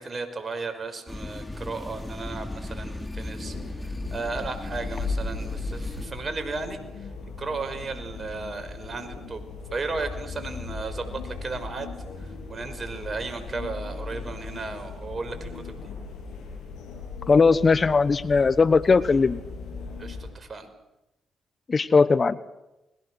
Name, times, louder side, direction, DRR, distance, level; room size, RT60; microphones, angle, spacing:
voice 1, 0.0-3.5 3.8-7.1 7.4-11.9 12.5-15.7 20.0-20.7, right 3 dB, 40° right, 8 dB, 5.5 m, -35 dB
sound 1, 1.1-6.1, left 2 dB, 20° left, 4.1 m, -36 dB
sound 2, 3.4-20.3, left 3 dB, 80° left, 7.9 m, -38 dB
voice 2, 17.3-19.4 21.7-22.4, left 4 dB, 45° left, 15 dB, 1.2 m, -19 dB
29.5 x 22.0 x 6.4 m, 0.93 s
supercardioid pair, 50°, 0 cm